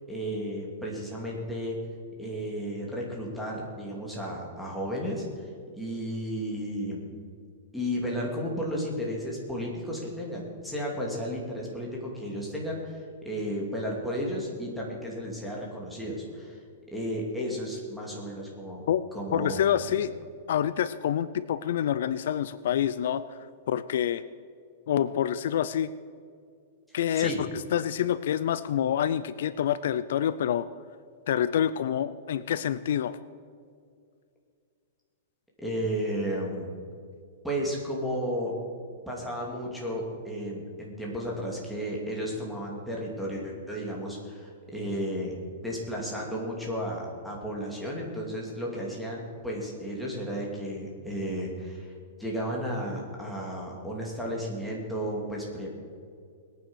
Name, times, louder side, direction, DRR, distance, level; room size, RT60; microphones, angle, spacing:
voice 1, 0.1-1.8 2.2-5.5 5.7-7.1 7.7-16.6 16.9-18.8 19.1-19.6 27.2-27.4 35.6-36.7 37.4-38.6 39.1-45.4 45.6-51.9 52.2-55.7, equal, ahead, -4 dB, 2.7 m, -33 dB
voice 2, 19.3-20.1 20.5-23.2 23.7-24.2 24.9-25.9 26.9-30.7 31.3-33.2, left 10 dB, 65° left, 15 dB, 0.5 m, -27 dB
20.5 x 9.3 x 6.3 m, 2.3 s
supercardioid pair, 170°, 0 cm